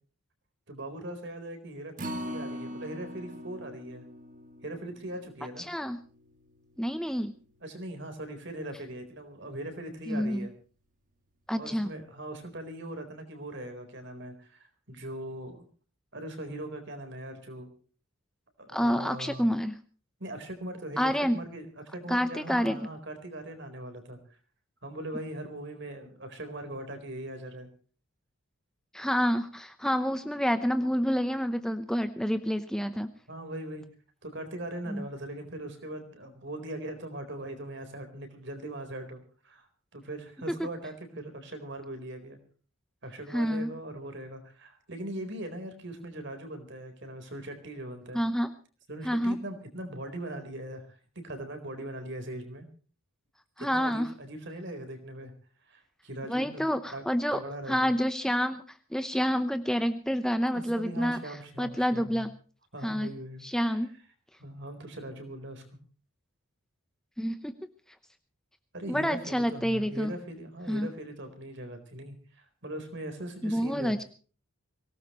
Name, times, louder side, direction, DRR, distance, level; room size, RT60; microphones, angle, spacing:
voice 1, 0.7-4.0 4.6-5.7 7.6-10.5 11.6-15.6 16.1-17.7 18.6-19.5 20.2-24.2 24.8-27.7 33.3-33.8 34.2-42.4 43.0-48.2 48.9-52.7 53.6-55.3 55.7-56.7 56.9-57.0 57.3-57.9 60.5-62.3 62.7-63.5 63.7-63.8 64.4-65.6 68.7-74.0, right 1 dB, 55° right, 7 dB, 4.2 m, -40 dB
Acoustic guitar, 2.0-8.3 8.7-8.8 9.2-9.3, equal, 35° right, 1.9 m, -43 dB
voice 2, 5.6-6.0 6.8-7.3 10.1-10.5 11.5-11.9 18.7-19.7 21.0-21.4 22.1-22.9 28.9-33.1 34.9-35.0 40.5-40.7 43.3-43.7 48.1-48.5 49.0-49.4 53.6-54.1 56.3-57.4 57.7-58.6 58.9-62.3 62.8-63.1 63.4-63.9 67.2-67.5 68.9-70.1 70.7-70.9 73.4-74.0, equal, 5° left, 9 dB, 0.7 m, -28 dB
23.5 x 18.0 x 3.1 m, 0.39 s
head